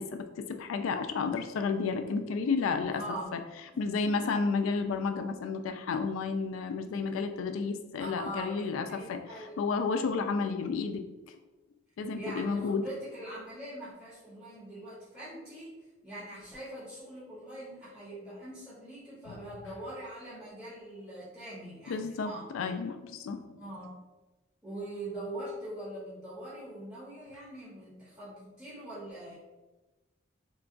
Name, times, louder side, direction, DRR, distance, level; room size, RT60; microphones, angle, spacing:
voice 1, 0.0-3.0 3.8-9.2 9.6-11.1 12.0-12.8 21.9-23.6, left 4 dB, 85° left, 7 dB, 0.3 m, -31 dB
voice 2, 2.9-3.3 3.7-3.9 8.0-9.5 12.1-22.5 23.6-24.0 24.6-29.4, right 1 dB, 15° right, -11 dB, 0.9 m, -42 dB
3.7 x 2.2 x 2.5 m, 1.1 s
head